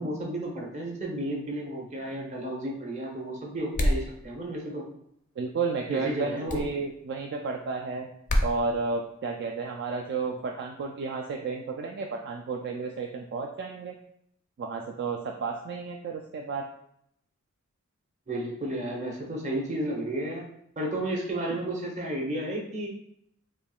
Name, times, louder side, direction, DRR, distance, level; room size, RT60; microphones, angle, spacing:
voice 1, 0.0-4.9 5.9-6.6 18.3-20.4 20.8-22.9, right 1 dB, 35° right, -1 dB, 0.8 m, -32 dB
sound 1, 3.7-4.1 6.5-6.7 8.3-8.5, equal, 40° left, 0.4 m, -24 dB
voice 2, 5.4-8.1 8.4-13.9 14.6-16.6, right 4 dB, 55° right, 2 dB, 0.3 m, -32 dB
4.5 x 3.0 x 2.3 m, 0.73 s
head